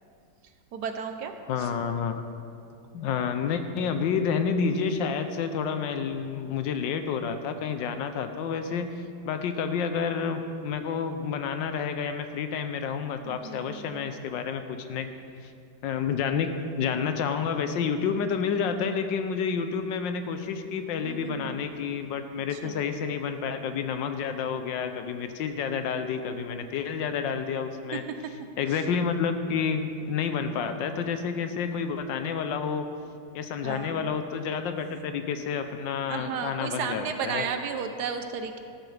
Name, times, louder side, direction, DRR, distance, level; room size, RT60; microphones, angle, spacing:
voice 1, 0.7-1.7 13.2-14.1 21.0-21.6 22.5-22.8 28.7-28.8 33.6-34.2 36.1-38.6, right 6 dB, 65° right, 7 dB, 1.2 m, -34 dB
voice 2, 1.5-2.2 2.9-8.9 9.2-15.1 15.4-15.5 15.8-28.0 28.6-32.9 33.3-37.4, left 6 dB, 75° left, 8 dB, 1.3 m, -29 dB
13.0 x 12.5 x 3.4 m, 2.4 s
omnidirectional pair, 2.1 m